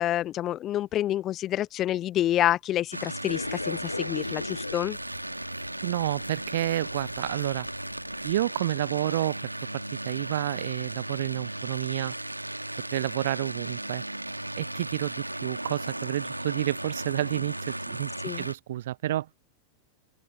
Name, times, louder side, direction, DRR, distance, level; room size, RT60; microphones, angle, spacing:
voice 1, 0.0-5.0 18.2-18.5, left 12 dB, 30° left, 0.5 m, -28 dB
sound 1, 2.9-18.5, right 1 dB, 85° right, 2.4 m, -36 dB
sound 2, 3.3-8.4, left 3 dB, 80° left, 0.5 m, -39 dB
voice 2, 5.8-7.7 8.2-12.1 12.9-14.0 14.6-18.1 18.4-19.3, right 13 dB, 60° right, 0.5 m, -30 dB
open air
figure-of-eight pair, 90°, 0 cm